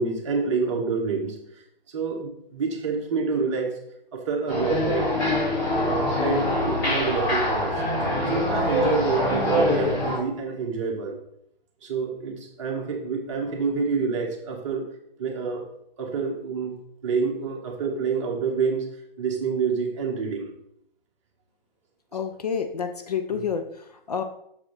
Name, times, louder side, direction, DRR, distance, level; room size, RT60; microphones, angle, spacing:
voice 1, 0.0-1.4 1.9-3.7 4.1-5.1 5.7-7.7 8.3-11.2 11.8-14.8 15.2-15.6 16.0-16.8 17.0-18.8 19.2-20.5 23.3-23.4, right 5 dB, 30° right, 1 dB, 1.2 m, -27 dB
sound 1, 4.5-10.2, left 1 dB, 25° left, 2.9 m, -24 dB
voice 2, 22.1-24.2, left 6 dB, 45° left, 6 dB, 0.6 m, -29 dB
6.6 x 4.8 x 4.0 m, 0.73 s
figure-of-eight pair, 140°, 29 cm